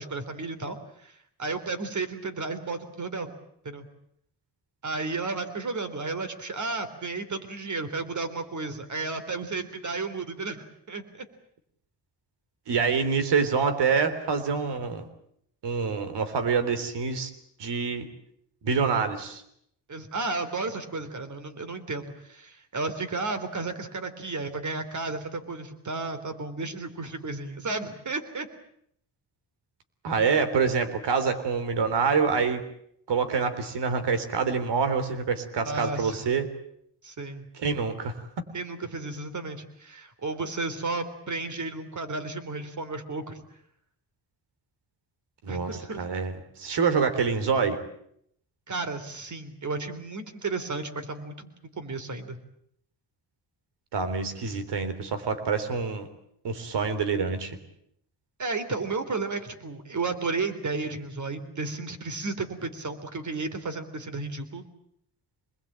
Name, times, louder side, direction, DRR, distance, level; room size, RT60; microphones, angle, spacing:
voice 1, 0.0-3.3 3.6-3.8 4.8-11.3 19.9-28.5 35.7-36.2 37.0-37.5 38.5-43.4 45.5-46.1 48.7-52.4 58.4-64.7, right 3 dB, 45° right, 9 dB, 3.8 m, -33 dB
voice 2, 12.7-15.0 15.6-17.3 17.6-18.1 18.6-19.4 30.0-32.6 33.1-36.5 37.6-38.4 45.4-47.8 53.9-56.1 56.4-57.6, right 5 dB, 75° right, 10 dB, 3.5 m, -26 dB
26.0 x 21.0 x 8.9 m, 0.72 s
cardioid pair, 90°, 41 cm